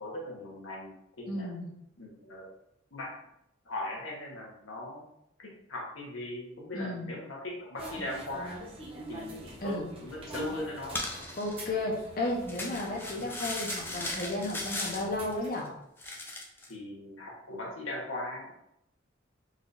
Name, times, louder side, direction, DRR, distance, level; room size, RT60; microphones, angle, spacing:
voice 1, 0.0-1.5 2.0-2.5 2.9-3.1 3.6-5.1 5.4-8.6 9.1-11.0 16.7-18.5, left 1 dB, 80° left, -2 dB, 1.2 m, -39 dB
voice 2, 1.3-1.7 6.7-7.1 9.6-9.9 11.4-15.7, left 2 dB, 45° left, -2 dB, 0.9 m, -33 dB
sound 1, 7.8-15.5, right 1 dB, 25° right, 0.9 m, -45 dB
sound 2, 10.9-11.6 12.5-15.0 15.3-15.7 16.0-16.7, left 2 dB, 10° left, 0.4 m, -37 dB
4.0 x 3.9 x 2.6 m, 0.79 s
head